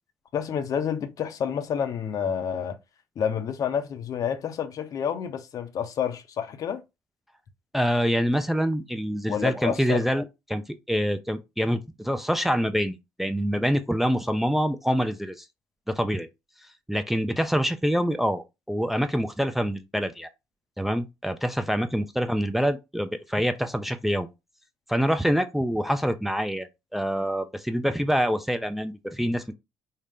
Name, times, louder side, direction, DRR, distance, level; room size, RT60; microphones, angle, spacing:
voice 1, 0.3-2.8 3.2-6.8 9.3-10.1, left 8 dB, 50° left, 0.6 m, -29 dB
voice 2, 7.7-10.6 10.9-15.4 15.9-16.3 16.9-20.3 20.8-24.3 24.9-29.5, equal, 5° right, 0.4 m, -26 dB
3.7 x 2.1 x 3.5 m
hypercardioid pair, 55°, 8 cm